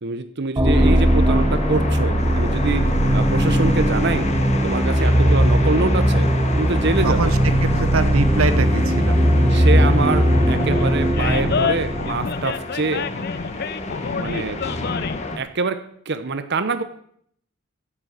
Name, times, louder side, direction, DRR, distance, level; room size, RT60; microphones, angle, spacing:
voice 1, 0.0-4.3 4.6-6.3 6.6-7.3 9.5-13.1 14.1-14.6 15.4-16.8, right 3 dB, 55° right, 11 dB, 0.8 m, -25 dB
sound 1, 0.6-12.4, equal, 20° right, 1.0 m, -18 dB
sound 2, 0.7-15.4, left 2 dB, 35° left, 1.4 m, -30 dB
voice 2, 7.0-9.2, right 3 dB, 85° right, 12 dB, 0.8 m, -23 dB
Animal, 10.3-15.3, left 6 dB, 50° left, 0.5 m, -28 dB
9.9 x 7.7 x 7.9 m, 0.67 s
head